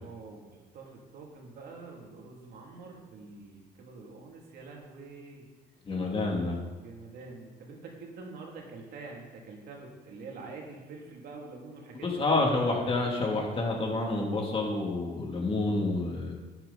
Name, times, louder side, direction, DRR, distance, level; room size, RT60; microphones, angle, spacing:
voice 1, 0.0-5.5 6.8-12.9, right 3 dB, 65° right, -1 dB, 2.7 m, -46 dB
voice 2, 5.8-6.6 12.0-16.3, left 2 dB, 35° left, -1 dB, 2.8 m, -28 dB
11.0 x 9.1 x 4.1 m, 1.3 s
cardioid pair, 110°, 17 cm